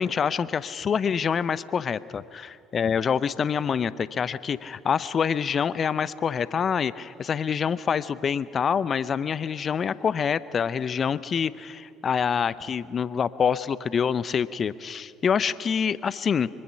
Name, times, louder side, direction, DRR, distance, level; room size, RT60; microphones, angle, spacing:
voice 1, 0.0-16.5, left 7 dB, 40° left, 17 dB, 0.7 m, -26 dB
25.0 x 24.5 x 5.8 m, 2.6 s
figure-of-eight pair, 55°, 0 cm